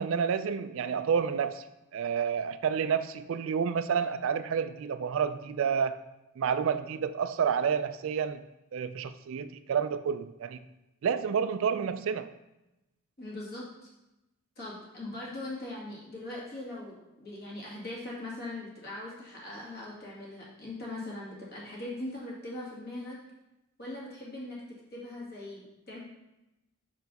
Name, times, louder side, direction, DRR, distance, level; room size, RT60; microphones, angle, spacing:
voice 1, 0.0-1.6 1.9-6.0 6.4-8.4 8.7-10.6 11.0-12.3, right 7 dB, 60° right, 11 dB, 0.3 m, -29 dB
voice 2, 13.2-13.7 14.6-23.2 23.8-26.0, left 2 dB, 45° left, -5 dB, 2.0 m, -40 dB
5.2 x 4.5 x 5.3 m, 0.97 s
head